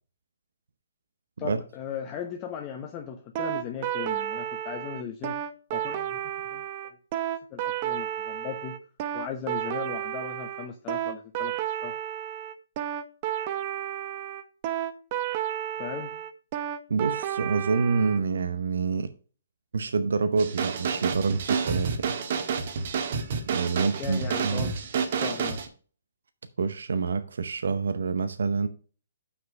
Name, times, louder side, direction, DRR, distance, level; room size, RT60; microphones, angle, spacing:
voice 1, 1.4-5.4 5.7-6.2 6.5-7.0 7.5-8.8 9.1-12.0 15.8-16.2 23.8-25.7, left 8 dB, 25° left, 0.9 m, -38 dB
sound 1, 3.3-18.2, right 11 dB, 35° right, 0.8 m, -32 dB
voice 2, 16.9-19.1 19.7-22.2 23.5-24.7 26.6-28.7, right 5 dB, 75° right, 0.8 m, -27 dB
sound 2, 20.4-25.7, right 6 dB, 55° right, 1.5 m, -29 dB
6.1 x 6.0 x 5.3 m
hypercardioid pair, 145°, 0 cm